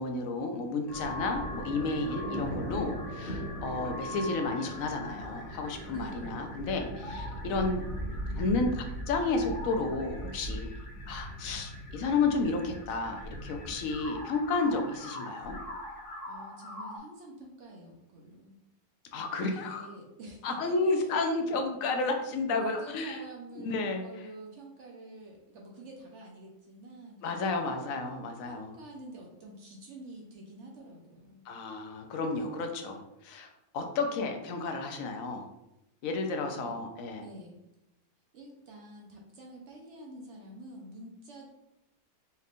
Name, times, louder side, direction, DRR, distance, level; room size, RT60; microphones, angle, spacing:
voice 1, 0.0-7.8 8.4-10.7 11.1-15.6 19.1-19.9 20.4-23.2 23.6-24.1 27.2-28.7 31.5-33.5 33.7-35.5 36.0-37.2, left 3 dB, 70° left, 4 dB, 0.9 m, -32 dB
sound 1, 0.9-17.0, equal, 40° left, 0.9 m, -39 dB
voice 2, 5.9-6.4 16.3-18.6 19.6-21.2 22.5-27.9 28.4-31.4 36.5-36.7 37.2-37.6 38.3-41.5, right 1 dB, 60° right, -1 dB, 0.9 m, -48 dB
4.3 x 3.3 x 2.4 m, 0.90 s
omnidirectional pair, 1.7 m